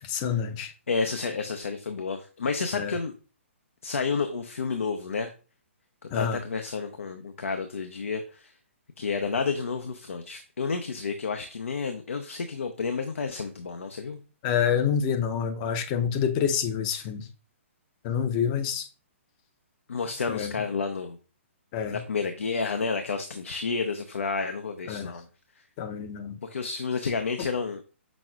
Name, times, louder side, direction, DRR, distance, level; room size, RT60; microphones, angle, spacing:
voice 1, 0.0-0.7 2.7-2.9 6.1-6.4 14.4-17.3 18.0-18.9 20.3-20.5 21.7-22.0 24.9-25.1 25.8-26.4, left 7 dB, 30° left, 0.6 m, -27 dB
voice 2, 0.9-3.1 3.8-5.3 6.1-8.5 9.0-14.2 17.0-17.1 19.9-21.2 21.9-25.3 26.4-27.8, left 4 dB, 75° left, 0.6 m, -30 dB
6.0 x 3.8 x 2.3 m
figure-of-eight pair, 130°, 7 cm